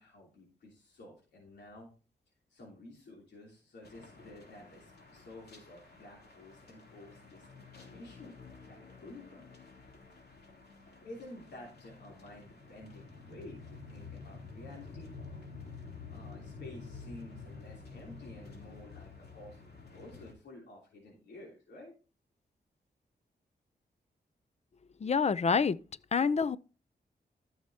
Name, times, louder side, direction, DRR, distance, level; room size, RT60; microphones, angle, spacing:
voice 1, 0.0-1.9 2.5-8.4 8.6-9.5 10.8-15.1 16.1-21.9, left 1 dB, 90° left, 3.1 m, -51 dB
sound 1, 3.8-20.3, left 4 dB, 70° left, 3.1 m, -50 dB
voice 2, 25.0-25.8 26.1-26.6, left 5 dB, 40° left, 0.5 m, -27 dB
13.5 x 6.5 x 2.8 m
wide cardioid pair, 90°, 18 cm